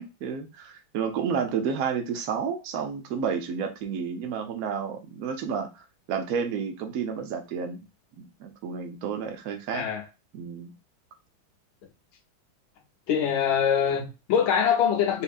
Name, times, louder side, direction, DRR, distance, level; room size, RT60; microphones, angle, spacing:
voice 1, 0.0-5.8 6.1-7.8 8.2-9.8 10.3-10.7, right 6 dB, 60° right, 1.0 m, -31 dB
voice 2, 9.7-10.0 13.1-15.2, left 8 dB, 80° left, 1.8 m, -24 dB
4.3 x 2.8 x 2.4 m
omnidirectional pair, 2.2 m